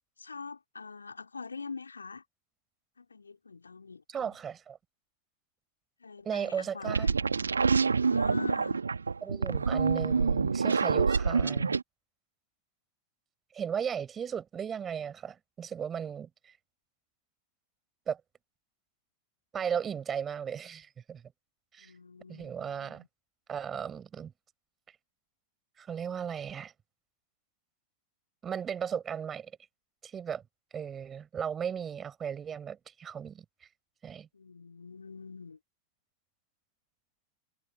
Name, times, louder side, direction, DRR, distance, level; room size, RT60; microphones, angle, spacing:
voice 1, 0.2-2.2 3.0-4.4 6.0-8.8 21.8-23.1 34.3-35.6, left 4 dB, 75° left, 4.0 m, -44 dB
voice 2, 4.1-4.8 6.2-7.1 9.2-11.8 13.5-16.5 18.1-18.2 19.5-21.2 21.7-21.9 22.3-23.0 23.5-24.3 25.8-26.7 28.4-29.5 30.0-30.4 30.7-33.7 34.0-34.3, right 8 dB, 20° right, 6.0 m, -36 dB
sound 1, 6.8-11.8, right 5 dB, 75° right, 1.8 m, -27 dB
figure-of-eight pair, 90°, 0 cm